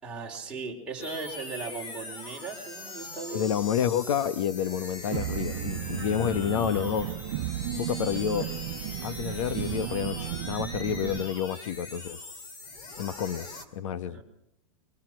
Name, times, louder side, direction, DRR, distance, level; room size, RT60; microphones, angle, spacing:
voice 1, 0.0-3.5 14.0-14.2, right 4 dB, 5° right, -3 dB, 4.4 m, -38 dB
sound 1, 1.0-13.6, left 3 dB, 25° left, 2.4 m, -42 dB
voice 2, 3.3-7.1 7.8-8.5 9.0-12.2 13.0-13.5 13.7-14.2, left 9 dB, 65° left, 13 dB, 1.2 m, -29 dB
sound 2, 5.1-11.2, right 13 dB, 50° right, 1.2 m, -34 dB
24.0 x 19.0 x 6.4 m, 0.81 s
supercardioid pair, 165°, 17 cm